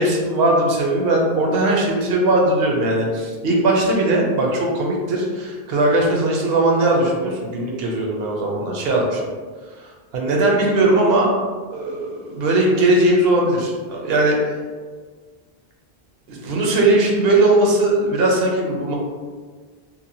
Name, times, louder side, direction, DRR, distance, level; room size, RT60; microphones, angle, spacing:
voice 1, 0.0-9.2 10.1-11.3 11.7-14.4 16.3-18.9, right 2 dB, 75° right, -1 dB, 0.8 m, -19 dB
2.9 x 2.1 x 2.6 m, 1.5 s
omnidirectional pair, 1.0 m